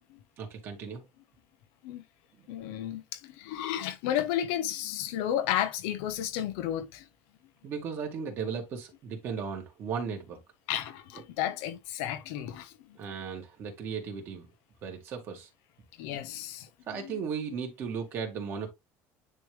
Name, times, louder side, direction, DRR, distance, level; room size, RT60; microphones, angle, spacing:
voice 1, 0.4-1.1 7.6-10.4 11.1-11.2 13.0-14.5 14.8-15.5 16.9-18.7, right 6 dB, 40° right, 2.3 m, -36 dB
voice 2, 2.5-7.0 10.7-12.7 16.0-16.7 17.0-17.1, left 11 dB, 85° left, 1.0 m, -32 dB
9.8 x 3.3 x 3.3 m
cardioid pair, 170°, 6 cm